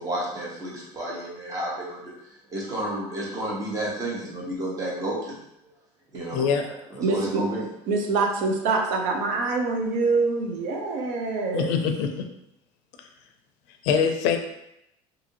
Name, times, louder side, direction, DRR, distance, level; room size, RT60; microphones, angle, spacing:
voice 1, 0.0-2.1 2.5-5.4 6.1-6.4 6.9-7.6, right 1 dB, 25° right, -4 dB, 1.0 m, -31 dB
voice 2, 6.3-6.7 11.5-12.2 13.0-13.1 13.8-14.4, left 6 dB, 80° left, 5 dB, 0.4 m, -23 dB
voice 3, 7.0-7.4 7.9-11.7, right 3 dB, 70° right, 2 dB, 0.6 m, -25 dB
2.7 x 2.6 x 2.8 m, 0.82 s
cardioid pair, 125°, 13 cm